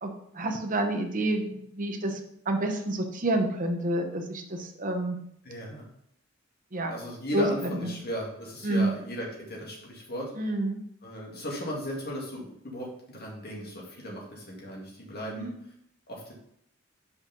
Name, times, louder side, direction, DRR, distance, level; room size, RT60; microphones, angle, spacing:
voice 1, 0.0-2.2 2.5-5.2 6.7-7.0 7.3-7.5 7.8-7.9 8.6-9.0 10.4-10.8 15.2-15.6, right 1 dB, 45° right, 3 dB, 0.9 m, -29 dB
voice 2, 5.4-5.9 6.9-10.5 11.0-15.7 16.1-16.3, equal, 55° left, -3 dB, 2.3 m, -36 dB
5.4 x 4.9 x 5.3 m, 0.72 s
head